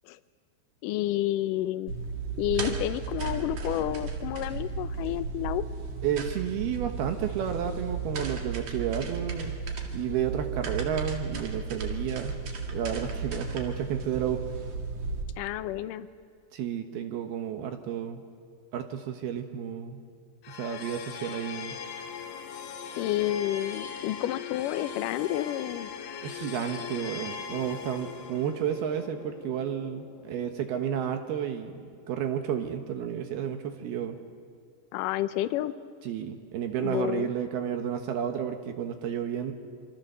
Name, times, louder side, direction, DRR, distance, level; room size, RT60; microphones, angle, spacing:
voice 1, 0.8-1.9 2.4-5.6 15.4-16.1 23.0-25.9 34.9-35.7 36.8-37.3, left 13 dB, 90° left, 11 dB, 1.8 m, -30 dB
sound 1, 1.9-15.2, right 5 dB, 50° right, 2.9 m, -34 dB
voice 2, 6.0-9.6 9.9-12.4 12.7-14.4 16.5-18.2 18.7-20.0 20.5-21.8 26.2-34.2 36.0-39.5, right 9 dB, 70° right, 6 dB, 3.0 m, -31 dB
sound 2, 20.4-31.5, left 7 dB, 65° left, 2.7 m, -40 dB
27.0 x 24.5 x 6.8 m, 2.1 s
omnidirectional pair, 4.8 m